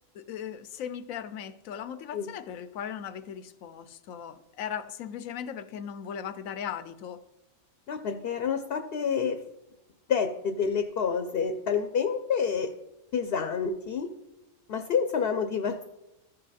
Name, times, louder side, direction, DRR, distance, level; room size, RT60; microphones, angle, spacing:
voice 1, 0.1-7.2, left 8 dB, 80° left, 1.0 m, -38 dB
voice 2, 7.9-9.4 10.1-12.7 13.1-14.1 14.7-15.8, left 6 dB, 55° left, 0.8 m, -28 dB
14.0 x 5.5 x 4.1 m
omnidirectional pair, 1.4 m